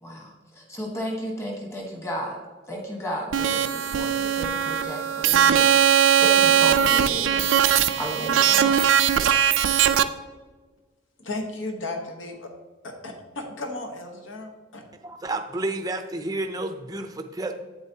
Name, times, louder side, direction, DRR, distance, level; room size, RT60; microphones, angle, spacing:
voice 1, 0.0-2.4 2.7-5.7 6.2-7.5 7.9-8.8, equal, 15° left, 0 dB, 1.3 m, -33 dB
sound 1, 3.3-10.0, right 9 dB, 75° right, 0.4 m, -20 dB
voice 2, 11.2-12.6 12.8-14.8, left 2 dB, 75° left, 4 dB, 1.1 m, -35 dB
voice 3, 15.0-17.5, right 2 dB, 20° right, 6 dB, 0.5 m, -30 dB
8.6 x 7.8 x 2.8 m, 1.3 s
head